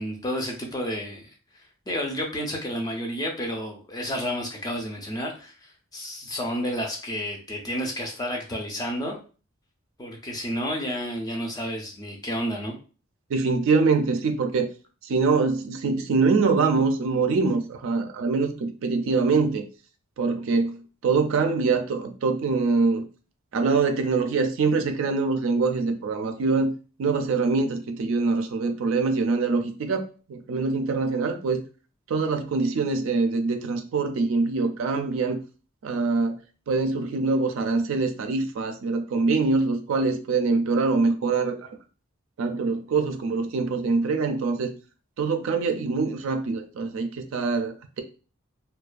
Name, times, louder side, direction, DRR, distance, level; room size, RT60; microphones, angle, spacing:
voice 1, 0.0-1.3 1.9-9.2 10.0-12.7, equal, 20° left, 1 dB, 0.4 m, -31 dB
voice 2, 13.3-14.7 15.0-19.6 20.2-23.0 23.5-26.7 27.0-30.0 30.3-31.6 32.1-35.4 35.8-36.4 36.7-41.7 42.4-44.7 45.2-48.0, right 4 dB, 70° right, 6 dB, 0.3 m, -24 dB
2.3 x 2.2 x 2.4 m, 0.36 s
head